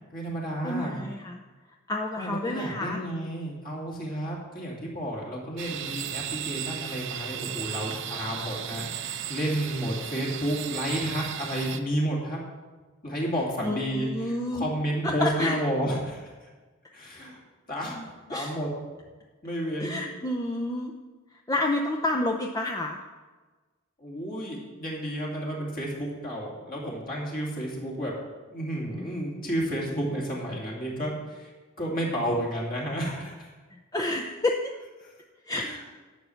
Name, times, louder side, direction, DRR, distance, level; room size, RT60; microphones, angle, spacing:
voice 1, 0.1-1.0 2.2-12.4 13.0-16.5 16.9-17.4 17.7-18.7 19.4-20.0 24.0-28.1 28.5-31.5 31.8-33.5 35.0-35.1 35.5-35.8, equal, 45° left, -3 dB, 2.7 m, -31 dB
voice 2, 0.6-1.4 1.9-3.0 13.6-14.7 15.0-15.6 18.3-18.5 19.8-20.9 21.5-23.0 33.7-34.6 35.4-35.9, left 2 dB, 15° left, 1 dB, 0.6 m, -29 dB
sound 1, 5.6-11.8, right 9 dB, 60° right, 0.7 m, -35 dB
11.5 x 5.7 x 7.9 m, 1.3 s
head